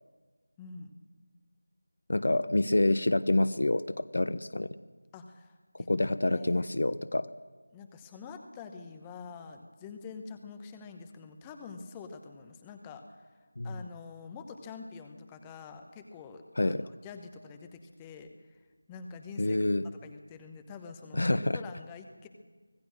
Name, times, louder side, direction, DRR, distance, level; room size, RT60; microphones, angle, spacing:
voice 1, 0.6-0.9 5.1-6.8 7.7-13.3 13.6-18.6 18.9-19.6 19.8-22.3, left 5 dB, 10° left, 6 dB, 1.1 m, -46 dB
voice 2, 2.1-4.7 5.9-7.3 13.6-13.7 16.6-16.8 19.4-19.8 21.1-21.6, left 2 dB, 50° left, 16 dB, 0.8 m, -27 dB
25.0 x 17.0 x 6.5 m, 1.4 s
figure-of-eight pair, 165°, 0 cm